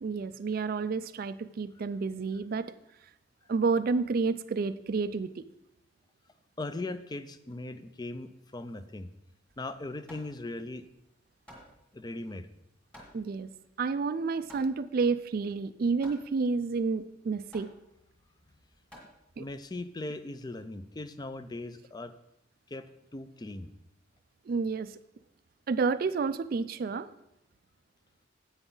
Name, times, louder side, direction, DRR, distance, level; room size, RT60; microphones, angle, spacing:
voice 1, 0.0-2.7 3.5-5.5 13.1-13.5 13.8-17.7 19.4-19.5 24.5-25.0 25.7-27.1, right 4 dB, 50° right, 13 dB, 0.3 m, -30 dB
voice 2, 6.6-9.1 9.6-10.8 11.9-12.5 19.4-22.1 22.7-22.8 23.1-23.7, left 2 dB, 20° left, 12 dB, 0.4 m, -39 dB
Hammer, 9.5-19.7, equal, 5° left, 1.9 m, -55 dB
10.0 x 8.0 x 3.8 m, 0.83 s
head